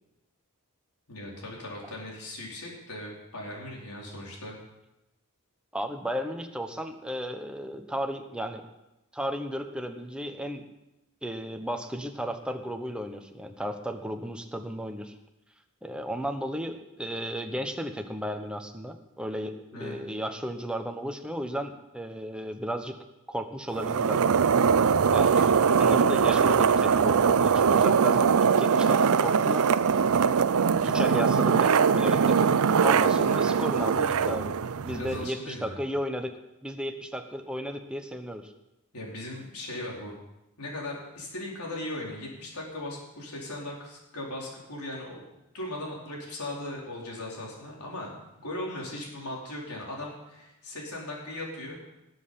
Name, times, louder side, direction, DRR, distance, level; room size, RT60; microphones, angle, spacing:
voice 1, 1.1-4.6 19.7-20.0 25.3-25.5 34.9-35.8 38.9-40.1 40.6-45.2 45.5-51.8, left 1 dB, 80° left, -3 dB, 4.4 m, -38 dB
voice 2, 5.7-8.7 9.1-10.7 11.2-15.1 15.8-23.0 23.3-24.2 25.1-25.5 25.8-29.7 30.8-34.5 34.8-36.4 36.6-38.5, equal, 5° right, 5 dB, 1.0 m, -34 dB
sound 1, 23.7-35.3, right 6 dB, 70° right, 0.5 m, -22 dB
19.5 x 7.8 x 5.7 m, 0.93 s
head